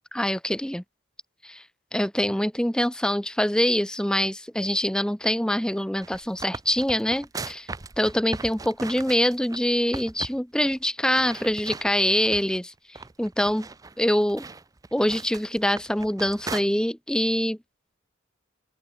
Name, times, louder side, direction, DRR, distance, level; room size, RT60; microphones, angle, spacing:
voice 1, 0.1-0.8 1.4-1.6 1.9-7.7 8.0-12.7 13.2-13.7 14.0-14.5 14.9-17.6, equal, 5° left, 0.8 m, -24 dB
sound 1, 5.8-9.6 9.9-10.4 10.6-10.8 11.1-12.6 12.9-16.6, right 3 dB, 15° right, 0.4 m, -38 dB
open air
head